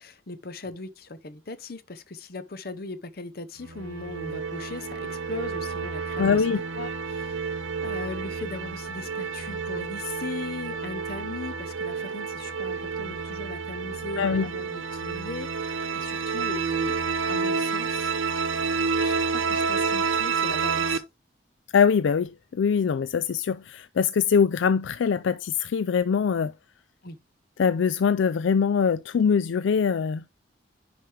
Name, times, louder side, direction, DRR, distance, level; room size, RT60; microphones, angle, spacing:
voice 1, 0.0-6.5 6.7-16.9 17.2-18.1 19.0-21.0 27.0-27.2, left 2 dB, 50° left, 0.8 m, -38 dB
sound 1, 3.6-21.0, right 5 dB, 85° right, 0.8 m, -29 dB
voice 2, 6.2-6.6 14.2-14.5 21.7-26.5 27.6-30.2, left 6 dB, 75° left, 0.4 m, -23 dB
10.0 x 5.1 x 3.3 m
head